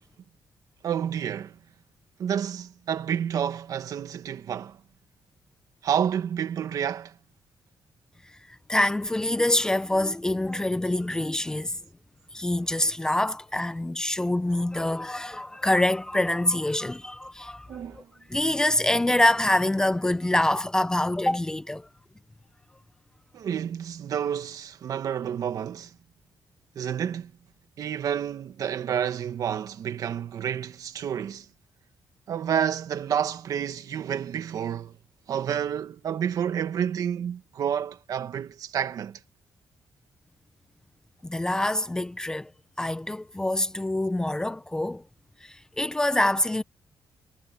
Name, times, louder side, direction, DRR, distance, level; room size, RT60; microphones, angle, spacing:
voice 1, 0.8-1.6 2.2-4.8 5.8-7.2 17.7-18.1 23.3-25.9 26.8-27.3 27.8-31.5 32.3-34.9 35.3-39.2, right 8 dB, 60° right, 1.9 m, -29 dB
voice 2, 8.7-11.8 12.3-17.7 18.0-18.1 18.3-21.9 41.2-42.5 42.8-45.0 45.4-46.6, left 1 dB, 10° left, 0.6 m, -25 dB
cardioid pair, 155°, 7 cm